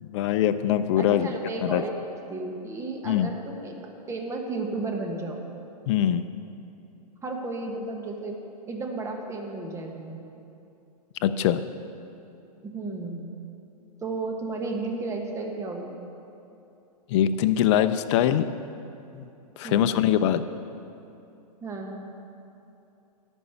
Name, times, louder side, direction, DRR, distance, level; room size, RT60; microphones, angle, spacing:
voice 1, 0.0-1.3 1.6-1.8 3.1-3.3 5.9-6.2 11.2-11.6 17.1-18.4 19.1-19.3 19.6-20.4, left 10 dB, 45° left, 11 dB, 0.5 m, -22 dB
voice 2, 1.0-1.9 2.3-3.8 4.1-5.4 7.2-8.4 8.7-10.2 12.6-13.2 14.0-15.9 19.6-20.0 21.6-22.1, right 3 dB, 15° right, 1 dB, 1.2 m, -33 dB
11.0 x 5.3 x 8.1 m, 2.7 s
hypercardioid pair, 125°, 21 cm